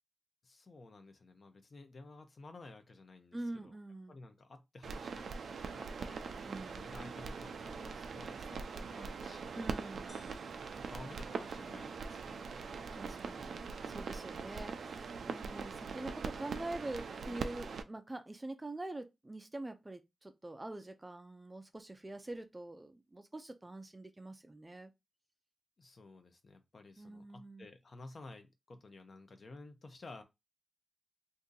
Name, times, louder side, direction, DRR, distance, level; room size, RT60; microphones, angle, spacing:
voice 1, 0.4-3.7 4.1-6.3 6.7-9.6 10.8-12.6 14.5-14.6 25.8-30.2, left 2 dB, 50° left, 0.7 m, -53 dB
voice 2, 3.3-4.2 6.4-6.8 9.5-10.2 12.9-24.9 27.0-27.7, right 2 dB, 20° right, 0.4 m, -45 dB
sound 1, 4.8-17.8, right 5 dB, 90° right, 0.4 m, -42 dB
sound 2, 10.1-12.0, left 2 dB, 70° left, 1.1 m, -64 dB
2.7 x 2.6 x 3.8 m
wide cardioid pair, 130°, 0 cm